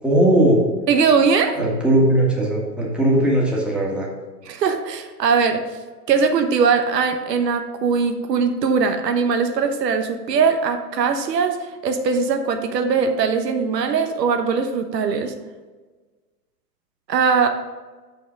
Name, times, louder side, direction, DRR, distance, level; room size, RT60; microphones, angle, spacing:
voice 1, 0.0-0.6 1.5-4.1, right 1 dB, ahead, -4 dB, 1.6 m, -18 dB
voice 2, 0.9-1.6 4.5-5.6 6.1-11.6 11.8-15.3 17.1-17.5, right 5 dB, 80° right, 7 dB, 1.0 m, -20 dB
6.0 x 5.9 x 5.1 m, 1.3 s
hypercardioid pair, 120°, 48 cm